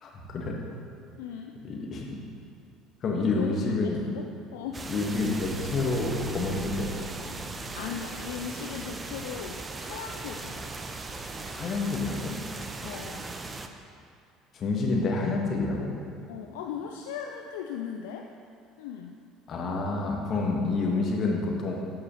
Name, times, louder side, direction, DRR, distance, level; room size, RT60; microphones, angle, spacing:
voice 1, 0.0-0.5 1.6-2.2 3.0-4.0 4.9-6.9 11.4-12.3 14.5-15.9 19.5-21.7, left 3 dB, 45° left, -1 dB, 1.4 m, -28 dB
voice 2, 1.2-1.6 3.4-3.6 4.0-4.8 7.7-10.7 12.8-13.3 16.3-18.3 18.8-19.2, left 8 dB, 70° left, 2 dB, 0.3 m, -38 dB
sound 1, 4.6-9.6, right 1 dB, 90° left, 0.8 m, -42 dB
sound 2, 4.7-13.7, right 3 dB, 25° right, 0.5 m, -38 dB
13.0 x 4.7 x 3.0 m, 2.5 s
figure-of-eight pair, 60°, 0 cm